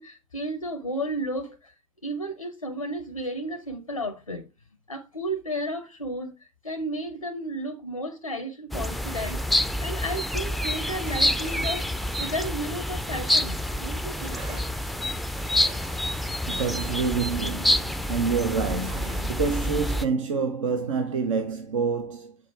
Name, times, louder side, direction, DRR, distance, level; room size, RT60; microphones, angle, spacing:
voice 1, 0.0-1.7 2.0-4.5 4.9-6.3 6.6-11.9 12.2-14.7, equal, 90° left, 0.5 m, -33 dB
sound 1, 8.7-20.1, left 1 dB, ahead, 0.4 m, -27 dB
sound 2, 10.6-13.6 14.2-18.4 18.8-19.6, right 4 dB, 45° right, 2.6 m, -48 dB
voice 2, 16.5-22.4, right 5 dB, 70° right, 0.7 m, -27 dB
6.5 x 4.7 x 4.4 m
figure-of-eight pair, 70°, 17 cm